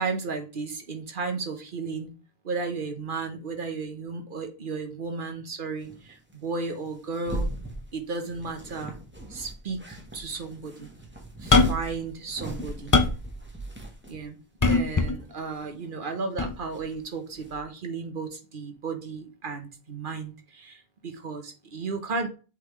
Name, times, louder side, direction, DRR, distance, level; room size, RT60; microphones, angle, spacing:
voice 1, 0.0-2.1 2.4-7.5 7.9-9.0 9.3-10.9 11.4-12.9 14.1-22.3, right 4 dB, 55° right, 5 dB, 1.2 m, -34 dB
sound 1, 5.8-14.3 14.9-15.0 15.2-16.2 16.5-17.6, right 2 dB, 10° right, 1.1 m, -40 dB
sound 2, 11.5-11.9 12.5-13.3 14.6-15.2 16.4-16.5, left 3 dB, 30° left, 0.3 m, -21 dB
8.0 x 3.8 x 3.2 m, 0.34 s
omnidirectional pair, 1.0 m